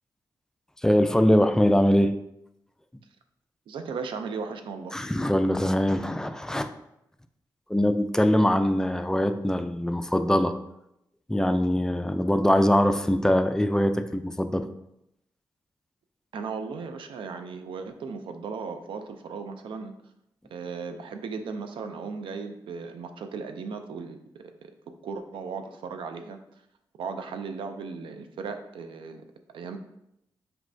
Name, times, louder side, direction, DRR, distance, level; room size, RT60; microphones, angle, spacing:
voice 1, 0.8-2.1 4.9-6.7 7.7-10.5 11.3-14.7, equal, 5° left, 8 dB, 0.3 m, -22 dB
voice 2, 3.7-5.1 16.3-19.9 20.5-24.7 25.0-26.4 27.0-29.2 29.5-29.8, right 5 dB, 85° right, 7 dB, 0.4 m, -36 dB
4.5 x 3.0 x 2.6 m, 0.81 s
cardioid pair, 60°, 9 cm